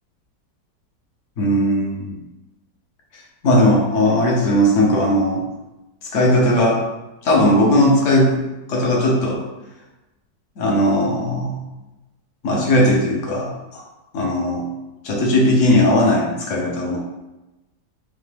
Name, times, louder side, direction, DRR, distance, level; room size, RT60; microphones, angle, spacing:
voice 1, 1.4-2.1 3.4-5.4 6.0-6.8 7.2-9.4 10.6-11.6 12.4-13.8 14.1-14.6 15.0-17.0, left 1 dB, 55° left, -2 dB, 1.0 m, -18 dB
4.2 x 2.5 x 3.3 m, 1.0 s
omnidirectional pair, 1.9 m